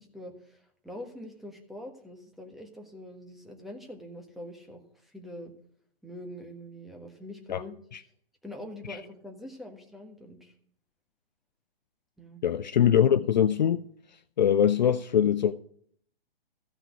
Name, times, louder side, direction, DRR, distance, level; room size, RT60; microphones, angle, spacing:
voice 1, 0.0-5.5 6.0-7.7 8.4-10.5 12.2-12.4, left 1 dB, ahead, 1.4 m, -44 dB
voice 2, 12.4-13.8 14.4-15.6, left 9 dB, 50° left, 0.5 m, -22 dB
14.5 x 5.7 x 8.2 m
figure-of-eight pair, 125°, 30 cm